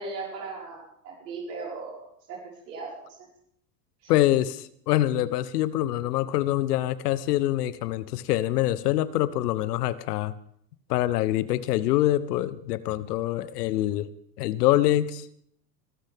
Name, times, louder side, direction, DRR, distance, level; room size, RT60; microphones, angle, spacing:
voice 1, 0.0-2.4 2.7-2.9 3.2-3.3 4.0-4.1, right 3 dB, 75° right, -4 dB, 5.3 m, -37 dB
voice 2, 4.1-10.3 10.9-14.1 14.4-15.2, left 14 dB, 70° left, 16 dB, 1.1 m, -25 dB
24.0 x 13.0 x 3.6 m, 0.67 s
hypercardioid pair, 90°, 49 cm